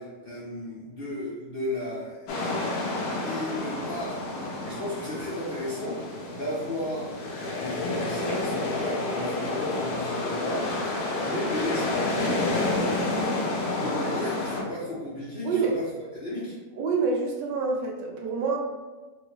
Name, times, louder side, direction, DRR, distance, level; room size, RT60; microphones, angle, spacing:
voice 1, 0.0-2.3 3.2-4.2 4.6-7.1 7.5-12.6 13.7-15.8 16.1-16.6, left 1 dB, 50° left, -8 dB, 0.8 m, -34 dB
sound 1, 2.3-14.6, left 2 dB, 65° left, 1.1 m, -29 dB
voice 2, 15.4-15.7 16.8-18.6, right 4 dB, 85° right, 0 dB, 1.3 m, -27 dB
4.1 x 2.3 x 2.9 m, 1.3 s
omnidirectional pair, 1.9 m